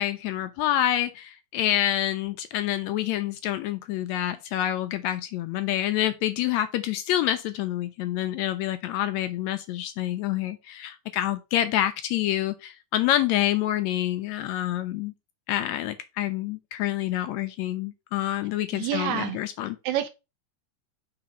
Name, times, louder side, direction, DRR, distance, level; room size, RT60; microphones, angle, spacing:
voice 1, 0.0-15.1 15.5-19.8, left 12 dB, 80° left, 1.7 m, -27 dB
voice 2, 18.7-19.4 19.8-20.1, right 10 dB, 75° right, 2.0 m, -28 dB
5.9 x 3.7 x 5.2 m
omnidirectional pair, 3.5 m